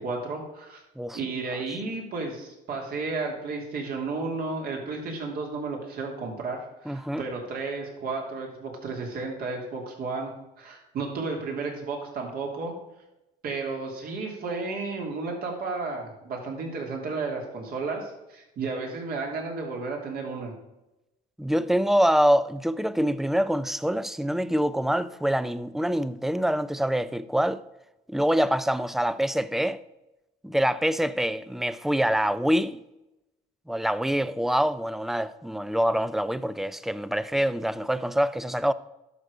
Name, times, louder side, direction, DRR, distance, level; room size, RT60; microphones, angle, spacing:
voice 1, 0.0-0.8 1.1-12.7 13.4-20.5, right 3 dB, 65° right, 2.9 m, -33 dB
voice 2, 6.9-7.2 21.4-27.6 28.1-29.8 30.4-32.8 33.7-38.7, equal, ahead, 0.4 m, -25 dB
11.0 x 6.6 x 4.9 m
cardioid pair, 110°, 17 cm